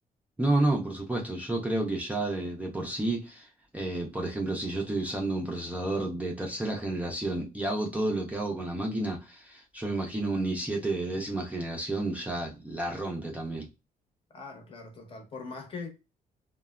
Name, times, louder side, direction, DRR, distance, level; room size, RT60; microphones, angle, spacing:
voice 1, 0.4-3.5 3.7-13.7, right 2 dB, 10° right, 0.4 m, -31 dB
voice 2, 14.3-15.9, left 4 dB, 35° left, 0.8 m, -41 dB
3.1 x 2.1 x 2.2 m
cardioid pair, 145°, 15 cm